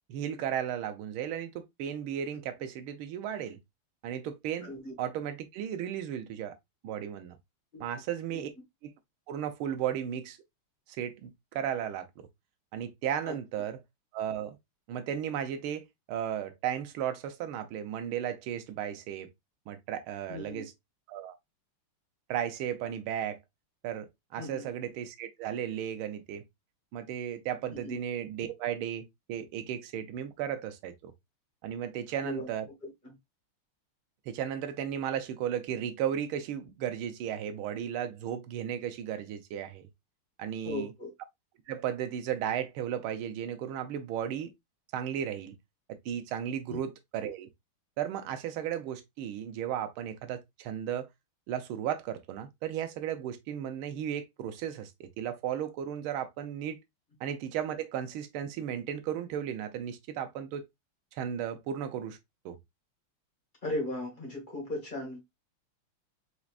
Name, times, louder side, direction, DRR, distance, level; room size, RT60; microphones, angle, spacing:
voice 1, 0.1-3.6 4.0-4.7 5.0-6.6 6.8-7.4 7.8-8.5 8.8-8.9 9.3-10.4 11.0-12.3 12.7-13.8 14.1-14.6 14.9-19.3 19.7-20.7 21.1-21.4 22.3-23.4 23.8-26.4 26.9-31.1 31.6-32.7 34.3-39.9 40.4-40.9 41.7-44.5 44.9-45.5 45.9-47.5 48.0-51.1 51.5-56.8 57.2-60.7 61.1-62.2 62.4-62.6, right 9 dB, 75° right, 1.6 m, -35 dB
voice 2, 4.6-4.9 7.7-7.8 8.3-8.4 13.2-13.7 20.3-20.7 24.4-24.7 27.7-28.0 32.2-32.5 32.8-33.2 40.6-41.1 46.7-46.8 63.6-65.2, left 1 dB, 20° left, 2.2 m, -37 dB
4.7 x 4.1 x 2.4 m
omnidirectional pair, 2.4 m